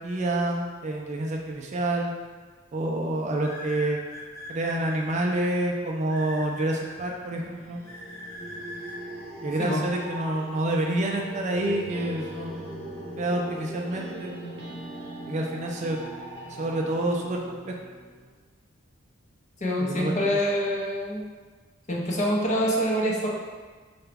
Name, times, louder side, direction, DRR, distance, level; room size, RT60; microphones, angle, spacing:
voice 1, 0.0-2.1 2.7-4.0 4.5-7.8 9.4-12.9 13.2-14.3 15.3-16.0 16.5-17.7 19.8-20.4, right 1 dB, 35° right, 0 dB, 0.3 m, -28 dB
sound 1, 3.4-5.4 6.1-7.1 7.9-9.0, left 1 dB, 85° left, 1.2 m, -41 dB
sound 2, 7.1-17.2, equal, 5° left, 0.9 m, -40 dB
sound 3, 11.5-18.3, right 2 dB, 60° right, 0.7 m, -45 dB
voice 2, 19.6-21.2 21.9-23.3, equal, 35° left, -3 dB, 0.6 m, -25 dB
4.8 x 2.2 x 3.3 m, 1.5 s
head